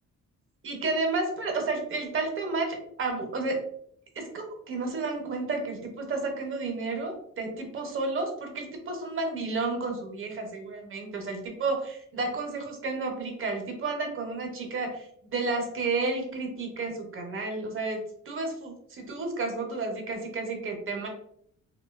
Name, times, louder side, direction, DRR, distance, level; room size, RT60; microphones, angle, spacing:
voice 1, 0.6-3.6 4.1-18.0 18.3-21.1, right 3 dB, 40° right, 2 dB, 0.6 m, -31 dB
2.6 x 2.2 x 2.3 m, 0.69 s
cardioid pair, 120°, 33 cm